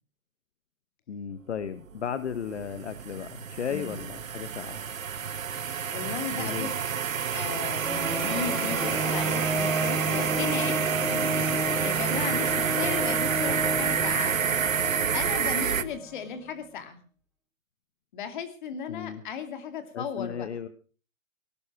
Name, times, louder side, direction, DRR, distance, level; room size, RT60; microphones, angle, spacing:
voice 1, 1.1-4.8 6.4-6.7 11.0-11.7 18.9-19.2 19.9-20.7, left 7 dB, 60° left, 12 dB, 1.4 m, -35 dB
sound 1, 2.0-15.8, right 7 dB, 80° right, 1.6 m, -29 dB
voice 2, 3.7-4.0 5.9-6.7 7.3-10.8 11.8-14.4 15.1-17.0 18.1-20.5, left 7 dB, 35° left, 9 dB, 2.5 m, -36 dB
sound 2, 7.8-16.2, right 1 dB, ahead, 0.7 m, -32 dB
18.5 x 11.5 x 6.1 m, 0.40 s
hypercardioid pair, 165°, 39 cm